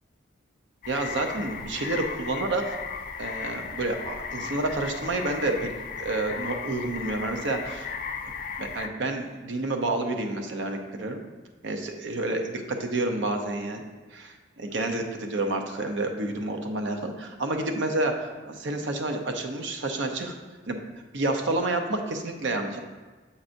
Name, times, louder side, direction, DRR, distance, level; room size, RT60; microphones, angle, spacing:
sound 1, 0.8-8.9, left 6 dB, 45° left, 0.4 m, -36 dB
voice 1, 0.9-2.8 3.2-5.7 6.0-7.9 8.6-11.2 11.6-13.8 14.1-20.3 20.7-20.8 21.1-22.8, right 2 dB, 70° right, 4 dB, 0.7 m, -29 dB
7.3 x 5.4 x 2.6 m, 1.3 s
head